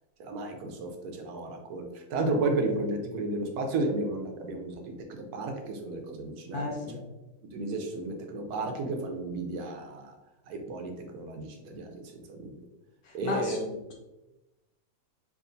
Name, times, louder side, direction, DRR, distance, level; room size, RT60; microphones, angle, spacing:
voice 1, 0.2-6.7 7.5-10.1 10.5-12.5 13.1-13.7, right 2 dB, 70° right, 3 dB, 1.0 m, -33 dB
voice 2, 6.5-7.0 13.0-13.6, left 3 dB, 70° left, 0 dB, 1.0 m, -33 dB
4.8 x 2.5 x 2.6 m, 1.0 s
omnidirectional pair, 2.0 m